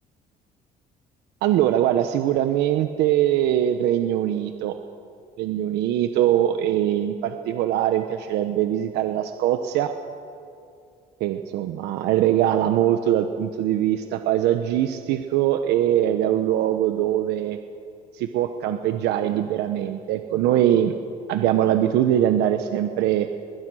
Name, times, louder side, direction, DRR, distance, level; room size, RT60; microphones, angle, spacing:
voice 1, 1.4-4.7 5.4-9.9 11.2-17.6 18.1-21.0 21.3-23.3, right 11 dB, 90° right, 7 dB, 1.1 m, -22 dB
23.5 x 20.0 x 6.4 m, 2.5 s
cardioid pair, 110°, 17 cm